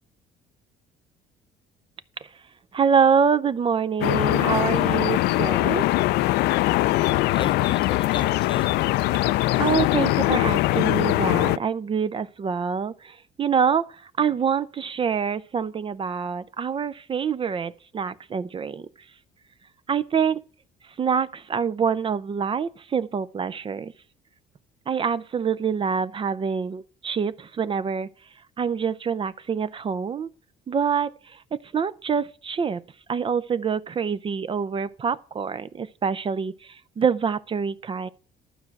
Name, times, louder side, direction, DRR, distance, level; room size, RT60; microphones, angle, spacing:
voice 1, 2.7-5.9 9.6-18.9 19.9-20.4 21.0-23.9 24.9-28.1 28.6-30.3 30.7-31.1 31.5-32.8 33.1-38.1, right 6 dB, 30° right, 0.5 m, -25 dB
sound 1, 4.0-11.6, left 17 dB, 80° left, 0.4 m, -22 dB
voice 2, 7.0-9.7, left 6 dB, 30° left, 0.5 m, -38 dB
12.0 x 4.7 x 7.6 m
cardioid pair, 110°, 17 cm